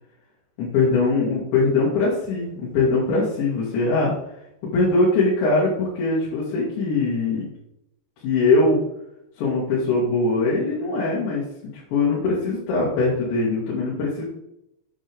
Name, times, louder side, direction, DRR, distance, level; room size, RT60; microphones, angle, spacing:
voice 1, 0.6-4.1 4.7-7.4 8.2-8.8 9.4-11.4 11.9-14.2, left 3 dB, 85° left, -6 dB, 4.5 m, -21 dB
8.8 x 7.9 x 3.6 m, 0.82 s
omnidirectional pair, 5.0 m